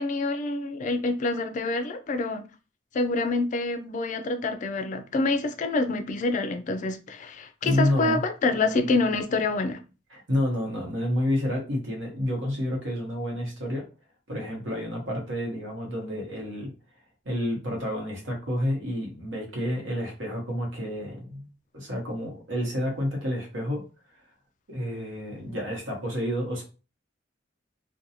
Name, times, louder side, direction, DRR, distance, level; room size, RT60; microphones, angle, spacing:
voice 1, 0.0-2.5 2.9-9.8, left 3 dB, 40° left, 0.3 m, -27 dB
voice 2, 7.6-8.2 10.1-13.8 14.3-16.7 17.2-23.8 24.7-26.6, left 1 dB, 80° right, 1.1 m, -29 dB
2.6 x 2.2 x 2.7 m
head